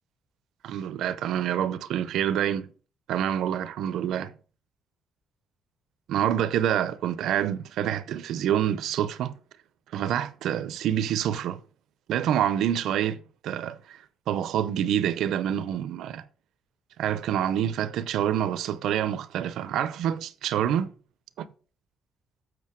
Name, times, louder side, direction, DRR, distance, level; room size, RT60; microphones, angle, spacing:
voice 1, 0.6-2.7 3.1-4.3 6.1-9.4 9.9-11.6 12.1-14.0 14.3-16.2 17.0-20.9 21.4-21.5, right 10 dB, 85° right, 0.7 m, -27 dB
7.7 x 5.4 x 4.6 m
cardioid pair, 85°, 0 cm